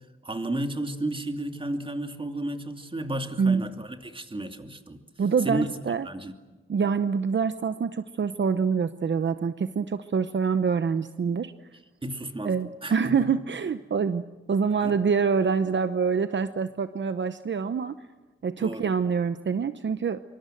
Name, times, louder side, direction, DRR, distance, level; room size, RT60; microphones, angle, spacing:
voice 1, 0.2-5.0 5.4-5.7 6.0-6.3 12.0-12.6 12.8-13.3 14.8-14.9 18.6-18.9, right 1 dB, 25° right, 6 dB, 2.6 m, -32 dB
voice 2, 5.2-6.1 6.7-11.5 12.4-14.2 14.5-18.0 18.4-20.2, right 6 dB, 60° right, 11 dB, 0.9 m, -26 dB
25.5 x 24.5 x 7.8 m, 1.2 s
wide cardioid pair, 105°, 21 cm